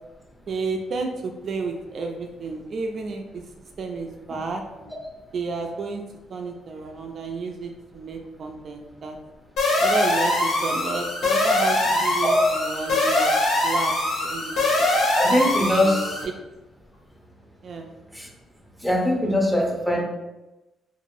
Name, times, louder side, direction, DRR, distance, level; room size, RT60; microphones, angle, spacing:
voice 1, 0.5-3.4 3.8-4.6 5.3-6.0 6.3-9.2 9.8-13.3 13.6-13.9 14.2-15.0 15.8-16.3 17.6-17.9, right 4 dB, 55° right, 3 dB, 0.3 m, -31 dB
sound 1, 9.6-16.2, left 1 dB, 85° left, 0.8 m, -22 dB
voice 2, 15.1-16.2 18.1-18.3 18.8-20.0, left 1 dB, ahead, 0 dB, 0.6 m, -22 dB
2.9 x 2.4 x 2.6 m, 1.0 s
cardioid pair, 90°, 0 cm